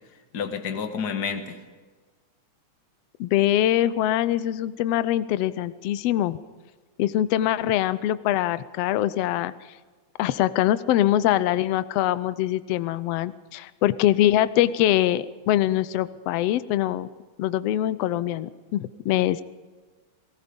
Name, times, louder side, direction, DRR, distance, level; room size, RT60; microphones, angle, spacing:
voice 1, 0.3-1.6, left 6 dB, 40° left, 7 dB, 1.8 m, -29 dB
voice 2, 3.2-6.4 7.0-9.5 10.2-17.1 17.4-19.4, left 13 dB, 80° left, 15 dB, 1.4 m, -23 dB
29.0 x 18.5 x 5.3 m, 1.3 s
omnidirectional pair, 3.7 m